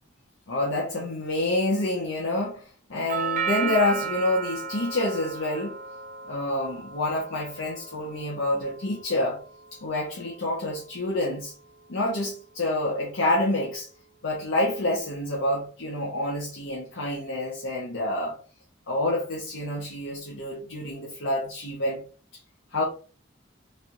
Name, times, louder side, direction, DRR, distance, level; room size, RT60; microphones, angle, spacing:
voice 1, 0.5-5.8 6.2-9.4 9.7-11.5 11.9-13.9 14.2-18.4 18.9-22.0 22.7-22.8, left 1 dB, 85° left, 0.9 m, -28 dB
Doorbell, 3.1-11.2, right 6 dB, 40° right, 0.5 m, -35 dB
3.3 x 3.2 x 2.6 m
head